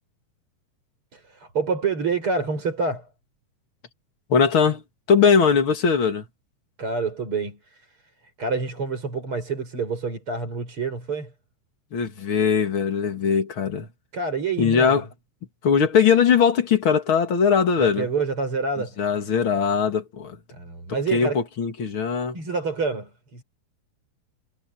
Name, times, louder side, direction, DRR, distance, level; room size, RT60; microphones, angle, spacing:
voice 1, 1.1-3.1 6.8-7.9 8.4-11.3 14.1-15.0 17.8-19.0 20.5-21.4 22.3-23.4, right 4 dB, 30° right, 6.6 m, -27 dB
voice 2, 4.3-4.8 5.1-6.3 11.9-13.9 14.6-15.1 15.6-18.1 19.0-20.4 21.1-22.4, left 6 dB, 40° left, 2.4 m, -20 dB
omnidirectional pair, 4.7 m